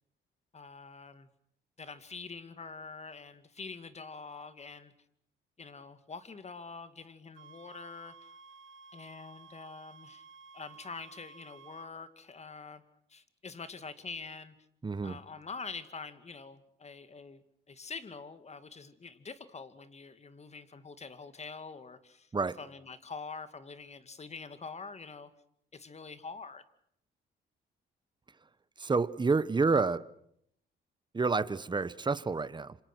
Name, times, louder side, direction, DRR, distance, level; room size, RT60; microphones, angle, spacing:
voice 1, 0.5-1.3 1.8-4.9 5.6-8.2 8.9-10.2 10.5-12.8 13.1-14.5 15.0-22.3 22.6-25.3 25.7-26.6, left 4 dB, 35° left, 2.4 m, -45 dB
sound 1, 7.4-11.9, right 5 dB, 85° right, 1.3 m, -54 dB
voice 2, 14.8-15.2 22.3-22.6 28.8-30.1 31.1-32.8, right 4 dB, 25° right, 1.2 m, -29 dB
27.5 x 26.0 x 6.3 m
cardioid pair, 90°, 20 cm